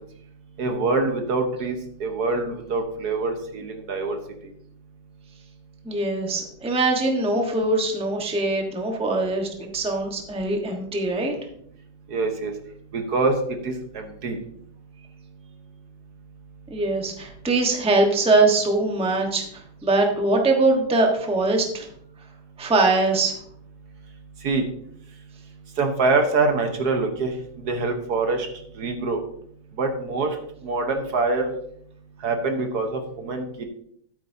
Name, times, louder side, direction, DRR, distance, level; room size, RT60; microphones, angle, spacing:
voice 1, 0.6-4.2 12.1-12.5 12.9-13.3 13.6-14.4 24.4-24.6 25.8-27.3 27.6-28.5 28.8-29.2 29.8-30.3 30.6-31.5 32.2-33.6, right 3 dB, 65° right, 5 dB, 1.6 m, -24 dB
voice 2, 5.8-11.3 16.7-21.9 22.6-23.4, right 2 dB, 5° right, 2 dB, 1.0 m, -22 dB
13.0 x 8.6 x 2.7 m, 0.67 s
omnidirectional pair, 1.9 m